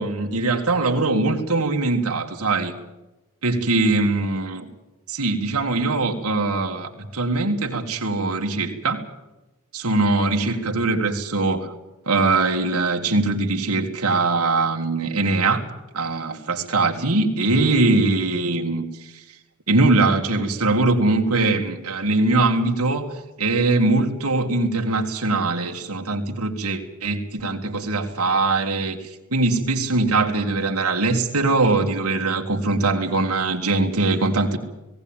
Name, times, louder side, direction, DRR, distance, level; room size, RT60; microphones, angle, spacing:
voice 1, 0.0-2.7 3.4-4.7 5.1-9.0 9.7-11.7 12.1-15.6 15.9-19.2 19.7-34.6, right 3 dB, 80° right, 1 dB, 2.1 m, -22 dB
18.0 x 18.0 x 8.9 m, 1.0 s
head